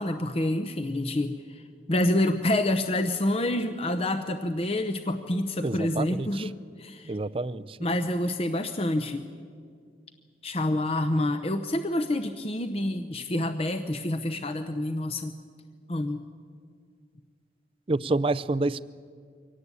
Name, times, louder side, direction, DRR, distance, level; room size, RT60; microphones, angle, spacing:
voice 1, 0.0-7.2 7.8-9.3 10.4-15.3 15.9-16.2, left 1 dB, 35° left, 8 dB, 0.7 m, -28 dB
voice 2, 5.6-6.5 7.1-7.8 17.9-18.8, right 2 dB, 30° right, 17 dB, 0.5 m, -28 dB
24.5 x 18.0 x 8.3 m, 2.1 s
head